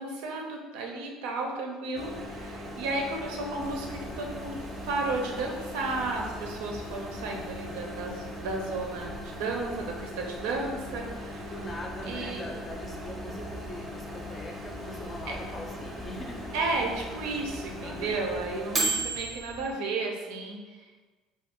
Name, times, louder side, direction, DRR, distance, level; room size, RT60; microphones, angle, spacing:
voice 1, 0.0-4.6 4.8-11.5 12.0-12.5 15.3-15.4 16.5-21.0, right 3 dB, 90° right, 1 dB, 0.5 m, -33 dB
Microwave oven, 1.9-19.7, right 1 dB, 25° right, 0.5 m, -38 dB
sound 1, 3.6-17.9, left 1 dB, 85° left, 0.5 m, -49 dB
voice 2, 11.3-16.5 17.8-18.2, left 1 dB, 30° left, 0 dB, 0.5 m, -41 dB
2.4 x 2.2 x 3.6 m, 1.4 s
cardioid pair, 115°, 0 cm